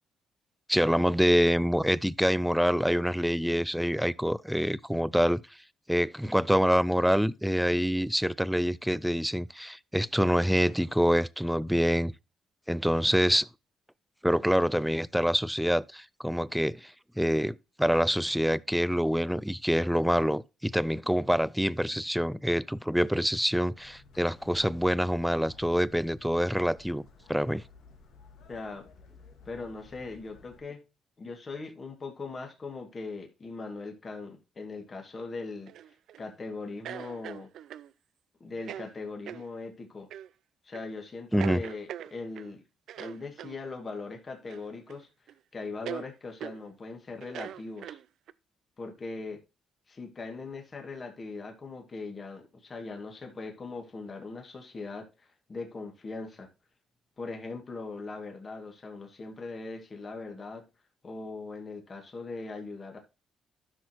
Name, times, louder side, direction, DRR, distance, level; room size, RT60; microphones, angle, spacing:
voice 1, 0.7-5.4 5.9-12.1 12.7-13.5 14.2-27.0 27.3-27.6 41.3-41.6, equal, ahead, 0.4 m, -26 dB
sound 1, 23.7-30.6, left 4 dB, 85° left, 2.1 m, -55 dB
voice 2, 28.5-28.9 29.4-30.8 31.2-35.7 36.2-37.5 38.4-40.1 40.6-42.6 43.0-45.1 45.5-48.0 48.8-49.4 49.9-56.5 57.2-60.7 61.0-63.0, left 3 dB, 35° left, 2.2 m, -40 dB
sound 2, 35.7-36.2 36.8-37.9 38.6-38.9 39.3-39.4 40.1-40.3 40.7-40.9 41.4-42.5 42.9-43.6 44.5-45.0 45.3-45.4 45.9-46.1 46.4-46.6 47.2-48.3, right 11 dB, 75° right, 0.4 m, -41 dB
12.0 x 6.2 x 3.0 m
cardioid pair, 90°, 0 cm